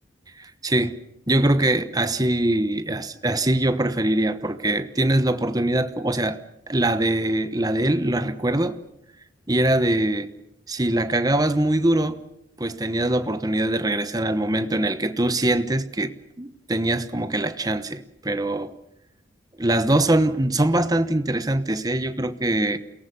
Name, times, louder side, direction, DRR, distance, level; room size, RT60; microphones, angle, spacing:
voice 1, 0.4-1.0 1.3-6.4 6.7-8.8 9.5-10.3 10.7-12.2 12.6-18.7 19.6-22.8, right 1 dB, 20° right, 11 dB, 1.0 m, -23 dB
28.5 x 18.0 x 6.9 m, 0.83 s
head